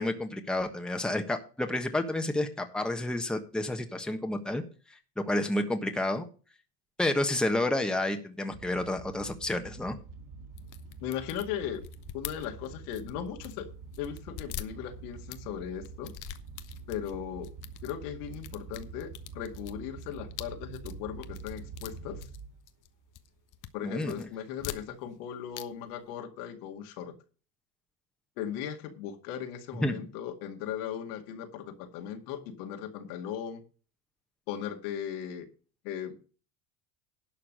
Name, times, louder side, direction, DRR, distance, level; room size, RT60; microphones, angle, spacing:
voice 1, 0.0-4.6 5.2-6.2 7.0-10.0 23.8-24.3 29.8-30.0, left 1 dB, ahead, 6 dB, 1.3 m, -30 dB
sound 1, 8.5-22.7 23.0-23.4 23.8-23.9 24.2-24.3, right 4 dB, 40° right, 3.0 m, -46 dB
sound 2, 10.6-13.6 13.9-15.4 15.8-17.1 17.4-17.9 18.3-22.9 23.1-23.7 24.0-25.2 25.5-25.6 25.9-26.0, left 12 dB, 40° left, 1.0 m, -44 dB
voice 2, 11.0-11.8 12.1-13.7 14.0-16.1 16.9-17.5 17.8-22.2 23.7-27.1 28.4-33.6 34.5-35.5 35.8-36.2, left 9 dB, 70° left, 5 dB, 2.2 m, -38 dB
11.5 x 5.7 x 6.7 m, 0.36 s
hypercardioid pair, 95°, 47 cm